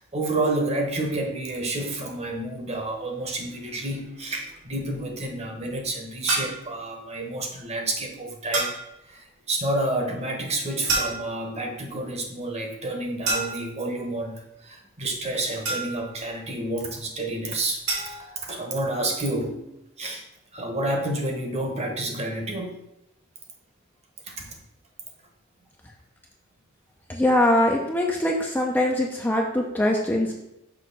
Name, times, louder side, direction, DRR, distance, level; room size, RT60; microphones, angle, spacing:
voice 1, 0.0-8.7 9.1-19.6 20.0-20.2 20.5-22.8 24.2-24.6, right 2 dB, 30° right, 2 dB, 1.0 m, -29 dB
sound 1, 6.3-6.7 8.5-8.9 10.9-11.5 13.3-13.8 15.7-16.2 17.9-18.2, right 3 dB, 85° right, 1.8 m, -28 dB
voice 2, 27.1-30.3, left 1 dB, 10° left, 0 dB, 0.5 m, -22 dB
6.1 x 3.0 x 5.7 m, 0.85 s
head